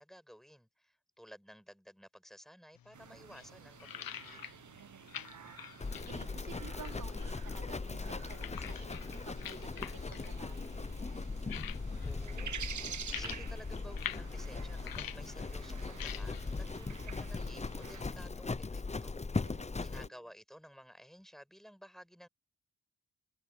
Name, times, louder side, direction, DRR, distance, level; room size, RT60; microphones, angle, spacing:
voice 1, 0.0-4.4 12.0-12.6 13.1-19.5 19.7-22.3, equal, ahead, 6.5 m, -55 dB
sound 1, 2.8-18.5, left 10 dB, 75° left, 1.1 m, -49 dB
sound 2, 2.9-18.0, right 7 dB, 55° right, 1.2 m, -50 dB
voice 2, 4.7-10.6 19.4-20.1, right 7 dB, 70° right, 4.5 m, -53 dB
Livestock farm animals working animals, 5.8-20.1, left 3 dB, 20° left, 0.7 m, -39 dB
cardioid pair, 55°, 35 cm